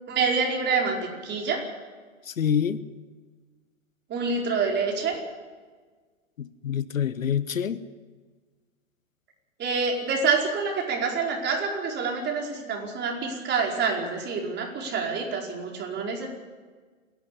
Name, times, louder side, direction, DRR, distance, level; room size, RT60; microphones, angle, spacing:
voice 1, 0.1-1.6 4.1-5.2 9.6-16.3, right 5 dB, 25° right, 4.9 m, -27 dB
voice 2, 2.3-2.8 6.4-7.8, left 8 dB, 80° left, 1.2 m, -26 dB
28.5 x 11.5 x 8.4 m
hypercardioid pair, 110°, 39 cm